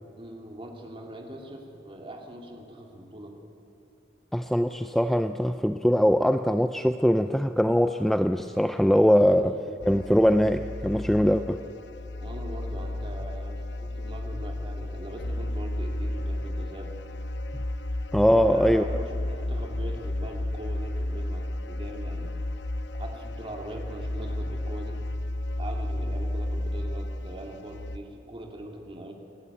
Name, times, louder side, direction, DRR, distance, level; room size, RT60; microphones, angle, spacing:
voice 1, 0.2-3.4 9.2-9.9 11.2-11.4 12.2-16.9 18.3-22.3 23.0-25.0 25.6-29.1, right 1 dB, 30° right, 1 dB, 2.7 m, -41 dB
voice 2, 4.3-9.6 9.9-11.6 18.1-18.8, equal, ahead, 9 dB, 0.4 m, -22 dB
sound 1, 9.8-28.0, left 1 dB, 80° left, 1.0 m, -33 dB
29.0 x 12.0 x 8.6 m, 2.7 s
head